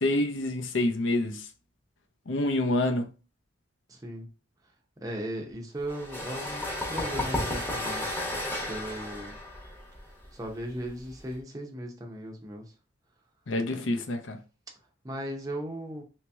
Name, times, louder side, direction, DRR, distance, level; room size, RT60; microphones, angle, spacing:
voice 1, 0.0-1.4 2.3-3.1 13.5-14.4, left 1 dB, 65° left, 0.7 m, -27 dB
voice 2, 3.9-4.3 5.0-8.0 8.6-9.4 10.3-12.6 15.0-16.0, equal, 20° right, 0.7 m, -37 dB
sound 1, 5.9-11.3, left 1 dB, 10° left, 1.0 m, -33 dB
3.1 x 2.8 x 3.3 m
head